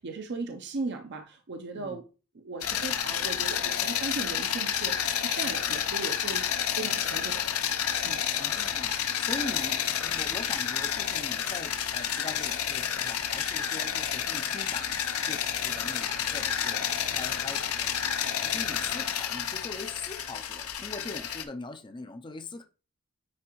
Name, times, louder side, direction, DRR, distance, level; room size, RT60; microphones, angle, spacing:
voice 1, 0.0-2.1 2.3-7.7 8.0-8.2, right 3 dB, 50° right, 0.6 m, -37 dB
sound 1, 2.6-21.4, left 9 dB, 70° left, 0.6 m, -30 dB
voice 2, 8.4-17.9 18.4-22.6, left 2 dB, 20° left, 0.5 m, -42 dB
9.5 x 3.3 x 3.0 m
head